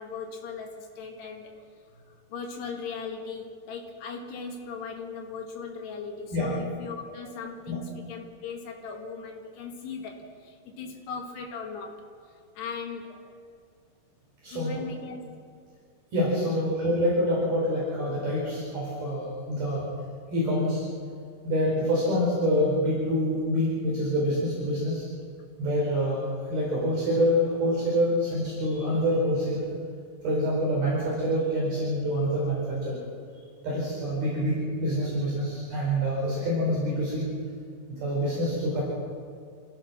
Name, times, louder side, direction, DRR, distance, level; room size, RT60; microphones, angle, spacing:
voice 1, 0.0-1.5 2.3-12.0 12.6-13.2 14.5-15.2 16.5-16.6, left 5 dB, 60° left, 1 dB, 4.1 m, -38 dB
voice 2, 14.4-14.8 16.1-19.9 20.3-20.8 21.4-25.1 25.6-29.7 30.2-33.0 33.6-37.3 37.9-38.8, equal, 50° right, -6 dB, 6.3 m, -26 dB
27.0 x 16.5 x 6.1 m, 2.2 s
omnidirectional pair, 5.7 m